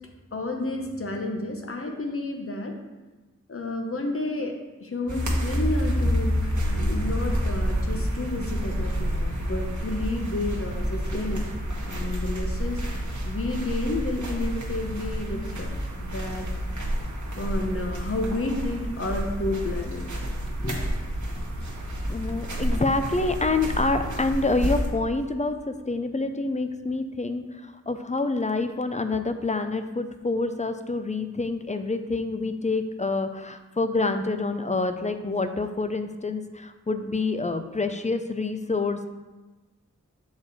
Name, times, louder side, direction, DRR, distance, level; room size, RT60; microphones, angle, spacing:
voice 1, 0.3-2.7 3.5-15.7 16.0-16.5 17.4-20.8, left 2 dB, 50° left, 2 dB, 1.1 m, -31 dB
sound 1, 5.1-24.9, equal, 75° right, 1.3 m, -29 dB
voice 2, 22.1-39.1, left 3 dB, 25° left, 8 dB, 0.5 m, -27 dB
6.6 x 4.8 x 4.2 m, 1.2 s
wide cardioid pair, 45°, 30 cm